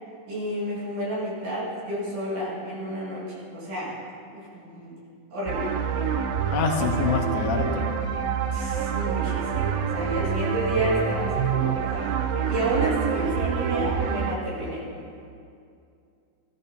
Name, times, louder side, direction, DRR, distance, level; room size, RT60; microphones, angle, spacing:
voice 1, 0.3-4.0 4.3-5.0 5.3-5.7 8.5-14.9, right 1 dB, 55° right, -7 dB, 3.7 m, -30 dB
sound 1, 5.5-14.4, right 7 dB, 80° right, 2.2 m, -27 dB
voice 2, 6.5-7.9, left 6 dB, 80° left, 2 dB, 2.8 m, -26 dB
16.0 x 12.5 x 2.8 m, 2.5 s
omnidirectional pair, 4.7 m